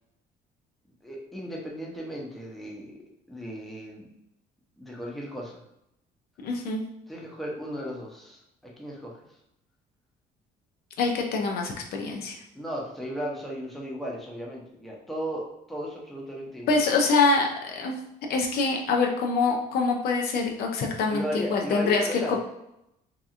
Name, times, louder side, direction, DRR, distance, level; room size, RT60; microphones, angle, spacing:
voice 1, 1.0-3.0 3.3-4.0 4.8-5.6 7.1-9.4 12.5-16.8 21.1-22.4, equal, ahead, -3 dB, 0.6 m, -36 dB
voice 2, 6.4-6.8 11.0-12.4 16.7-18.0 18.3-22.4, left 4 dB, 65° left, 2 dB, 0.5 m, -25 dB
2.8 x 2.3 x 2.4 m, 0.83 s
cardioid pair, 110°, 17 cm